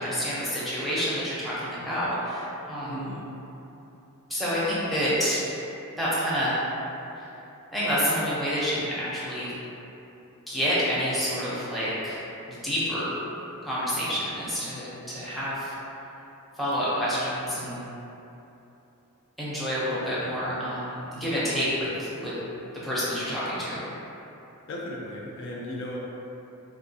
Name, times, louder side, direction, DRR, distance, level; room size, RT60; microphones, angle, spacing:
voice 1, 0.0-3.2 4.3-5.4 6.0-6.6 7.7-9.5 10.5-12.2 12.5-13.2 13.6-15.7 16.6-17.8 19.4-22.3 22.8-23.8, equal, ahead, -10 dB, 0.6 m, -28 dB
voice 2, 2.8-3.2 24.7-26.0, left 1 dB, 55° left, -3 dB, 0.4 m, -36 dB
3.4 x 2.3 x 2.7 m, 3.0 s
head